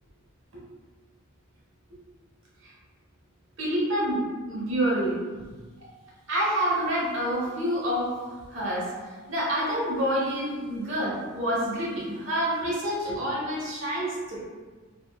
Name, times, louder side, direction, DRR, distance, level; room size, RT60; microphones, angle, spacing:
voice 1, 3.6-4.2 4.4-5.2 6.3-8.1 8.5-8.9 9.3-14.4, equal, 70° right, -6 dB, 1.0 m, -27 dB
2.9 x 2.9 x 2.2 m, 1.4 s
head